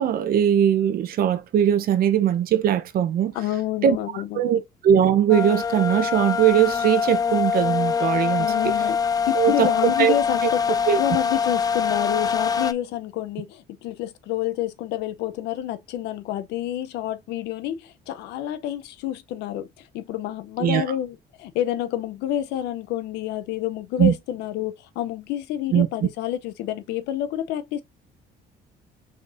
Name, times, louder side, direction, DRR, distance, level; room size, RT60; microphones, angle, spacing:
voice 1, 0.0-3.3 3.8-8.5 9.3-10.2 10.4-10.5 10.9-11.0 20.6-20.8 24.0-24.1 25.7-25.9, right 9 dB, 60° right, 0.8 m, -20 dB
voice 2, 3.3-4.5 8.4-9.0 9.3-19.7 19.9-27.8, left 12 dB, 85° left, 0.7 m, -28 dB
sound 1, 5.3-12.7, left 6 dB, 20° left, 0.4 m, -24 dB
5.1 x 3.9 x 2.6 m
cardioid pair, 110°, 17 cm